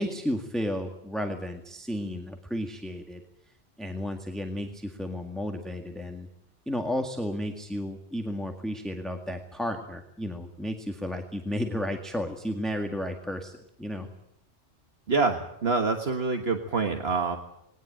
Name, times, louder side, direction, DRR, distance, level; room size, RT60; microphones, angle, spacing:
voice 1, 0.0-3.2 3.8-6.3 6.7-14.1, left 1 dB, ahead, 3 dB, 1.8 m, -33 dB
voice 2, 15.1-17.4, right 4 dB, 60° right, 5 dB, 1.8 m, -26 dB
20.5 x 18.5 x 8.9 m, 0.77 s
omnidirectional pair, 1.2 m